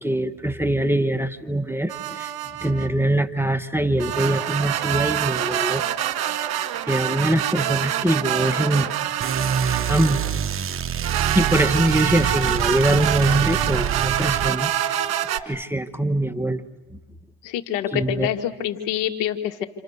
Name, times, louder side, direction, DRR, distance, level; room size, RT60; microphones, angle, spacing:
voice 1, 0.0-2.3 2.6-5.8 6.2-6.3 6.9-8.9 9.6-10.2 11.3-14.7 15.5-16.6 17.9-18.3, right 1 dB, 5° right, 7 dB, 1.3 m, -23 dB
sound 1, 1.9-2.9 4.0-10.4 11.0-15.4, right 11 dB, 55° right, 2.0 m, -26 dB
sound 2, 9.2-14.5, right 8 dB, 30° right, 1.1 m, -26 dB
voice 2, 17.4-19.6, left 10 dB, 75° left, 5 dB, 2.5 m, -26 dB
29.0 x 28.0 x 6.8 m, 0.99 s
supercardioid pair, 90°, 44 cm